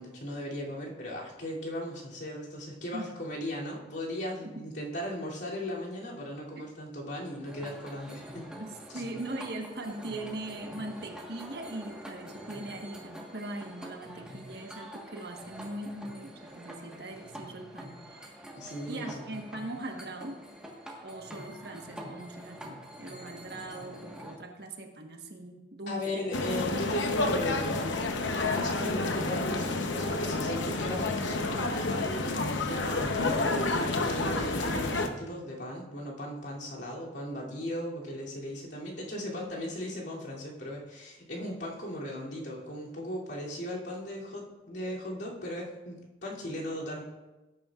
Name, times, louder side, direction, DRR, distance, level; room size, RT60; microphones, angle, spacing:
voice 1, 0.0-8.6 18.6-19.4 25.9-28.2 28.5-47.0, equal, 65° left, -5 dB, 2.9 m, -37 dB
sound 1, 7.4-24.4, equal, 5° right, 1.4 m, -46 dB
voice 2, 8.6-17.9 18.9-20.4 21.0-26.3, right 2 dB, 55° right, 3 dB, 1.3 m, -40 dB
sound 2, 26.3-35.1, left 2 dB, 80° left, 0.9 m, -29 dB
18.0 x 9.5 x 2.5 m, 1.1 s
head